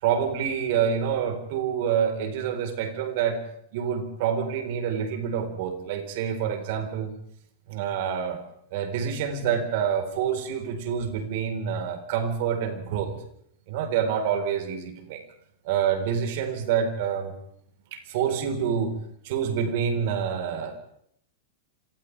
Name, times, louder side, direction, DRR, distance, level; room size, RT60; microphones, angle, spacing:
voice 1, 0.0-3.4 3.7-7.1 7.7-8.4 8.7-13.1 13.7-15.2 15.6-17.3 17.9-18.9 19.2-20.8, right 8 dB, 55° right, 5 dB, 4.3 m, -27 dB
27.5 x 27.0 x 3.5 m, 0.69 s
hypercardioid pair, 100°, 0 cm